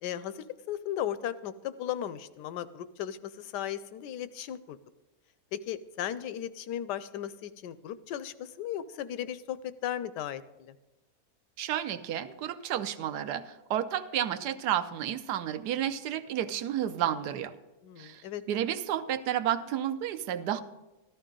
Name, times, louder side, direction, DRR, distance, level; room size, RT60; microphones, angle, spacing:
voice 1, 0.0-4.8 5.5-10.7 17.8-18.4, left 10 dB, 85° left, 14 dB, 1.2 m, -36 dB
voice 2, 11.6-17.5 18.0-18.2 18.5-20.6, right 10 dB, 75° right, 12 dB, 1.2 m, -31 dB
14.0 x 13.0 x 3.8 m, 1.1 s
omnidirectional pair, 1.8 m